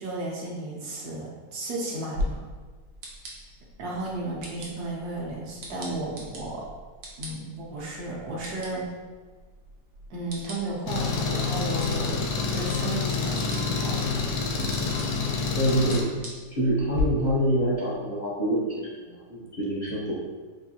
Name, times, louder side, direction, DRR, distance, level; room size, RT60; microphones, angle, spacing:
voice 1, 0.0-2.4 3.8-6.6 7.2-8.9 10.1-14.3, right 2 dB, 70° right, -4 dB, 1.3 m, -34 dB
sound 1, 2.1-17.0, left 2 dB, 85° right, 1.4 m, -41 dB
Engine, 10.9-16.0, left 4 dB, 70° left, 1.0 m, -27 dB
voice 2, 15.5-16.1 16.6-20.1, right 1 dB, 45° left, -9 dB, 0.6 m, -26 dB
4.1 x 2.7 x 2.7 m, 1.4 s
omnidirectional pair, 1.8 m